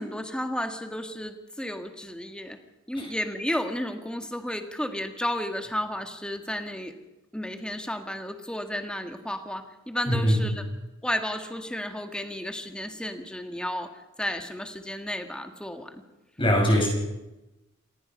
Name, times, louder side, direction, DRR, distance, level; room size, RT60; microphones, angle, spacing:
voice 1, 0.0-2.6 2.9-6.9 7.3-10.6 11.0-13.9 14.2-16.0, left 1 dB, 5° left, 6 dB, 1.6 m, -32 dB
voice 2, 10.1-10.5 16.4-16.9, equal, 25° left, 0 dB, 6.1 m, -22 dB
27.0 x 18.5 x 5.4 m, 1.0 s
head